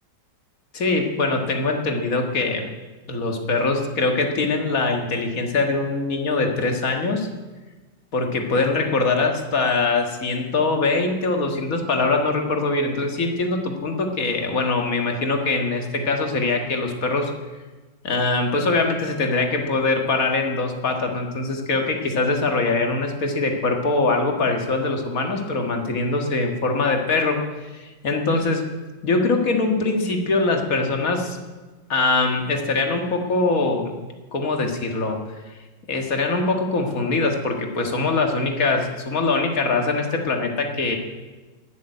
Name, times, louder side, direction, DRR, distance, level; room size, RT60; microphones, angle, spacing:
voice 1, 0.7-2.7 3.1-7.3 8.1-17.3 18.0-27.4 27.7-28.6 29.0-31.4 31.9-33.9 34.3-35.2 35.9-41.0, left 3 dB, 50° left, 3 dB, 2.0 m, -22 dB
14.0 x 7.4 x 9.8 m, 1.3 s
omnidirectional pair, 1.9 m